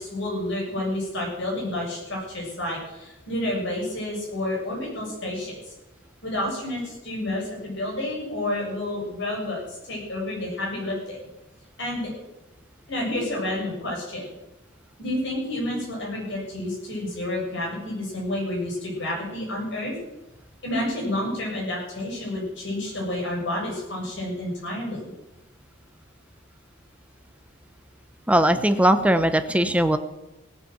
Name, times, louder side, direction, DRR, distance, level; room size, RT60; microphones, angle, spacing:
voice 1, 0.0-5.7 6.2-11.2 11.8-12.1 12.9-14.2 15.0-19.9 20.6-25.1, left 1 dB, 60° left, -2 dB, 7.4 m, -30 dB
voice 2, 28.3-30.0, right 1 dB, 5° right, 9 dB, 0.9 m, -19 dB
17.0 x 8.4 x 7.9 m, 0.96 s
head